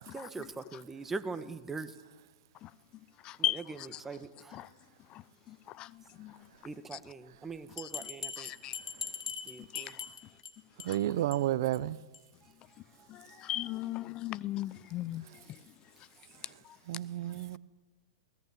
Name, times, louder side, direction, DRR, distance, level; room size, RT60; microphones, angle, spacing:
voice 1, 0.1-1.9 3.4-4.6 6.6-8.5 9.4-9.9, right 3 dB, 10° right, 1.4 m, -42 dB
voice 2, 3.2-3.6 4.5-4.7 5.1-5.2 5.5-5.9 6.2-6.4 7.8-7.9 8.4-8.8 9.7-10.0 10.9-11.0 13.1-15.2, left 14 dB, 35° left, 0.6 m, -37 dB
Bell, 7.8-10.5 10.8-11.0 11.3-11.4 11.7-11.8 12.1-12.2, left 6 dB, 80° left, 2.3 m, -40 dB
voice 3, 10.9-12.0 16.9-17.6, right 13 dB, 60° right, 0.7 m, -31 dB
22.5 x 18.0 x 8.5 m
hypercardioid pair, 110°, 2 cm